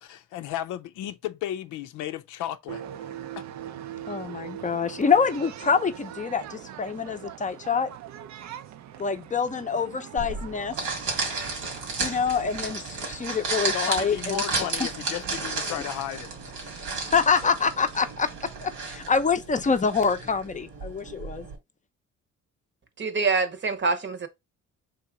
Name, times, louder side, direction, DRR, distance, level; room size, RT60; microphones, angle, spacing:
voice 1, 0.0-2.8 3.4-3.5 13.7-17.1, left 11 dB, 85° left, 0.5 m, -34 dB
sound 1, 2.7-18.9, right 10 dB, 65° right, 0.6 m, -43 dB
voice 2, 4.1-7.9 9.0-10.7 12.0-14.4 17.1-18.3 18.6-21.4, left 5 dB, 25° left, 0.6 m, -26 dB
sound 2, 10.2-21.6, right 3 dB, 85° right, 1.8 m, -33 dB
voice 3, 23.0-24.3, right 4 dB, 40° right, 0.9 m, -25 dB
3.5 x 2.9 x 4.7 m
cardioid pair, 90°, 30 cm